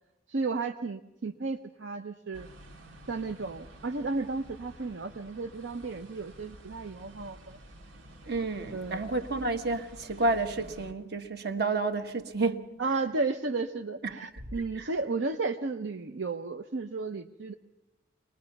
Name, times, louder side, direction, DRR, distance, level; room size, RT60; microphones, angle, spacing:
voice 1, 0.3-2.5 3.1-7.6 8.7-9.0 12.8-17.5, right 3 dB, 70° right, 0.7 m, -33 dB
sound 1, 2.3-10.9, right 1 dB, 90° right, 2.0 m, -50 dB
voice 2, 8.3-12.7 14.0-14.4 14.7-14.9, right 3 dB, 55° right, 1.3 m, -30 dB
23.5 x 19.5 x 5.9 m
head